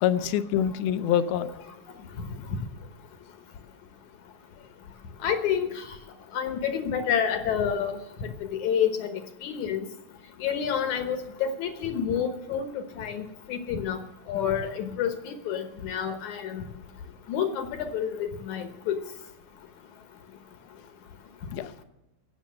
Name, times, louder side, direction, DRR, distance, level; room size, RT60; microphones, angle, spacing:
voice 1, 0.0-1.5 21.5-21.8, left 10 dB, 90° left, 12 dB, 2.7 m, -25 dB
voice 2, 5.2-5.8 6.3-9.1 9.4-9.8 10.4-12.7 13.0-13.2 13.5-14.0 14.3-16.7 17.3-19.0, left 8 dB, 65° left, 8 dB, 2.2 m, -28 dB
16.5 x 7.1 x 7.4 m, 0.98 s
omnidirectional pair, 4.2 m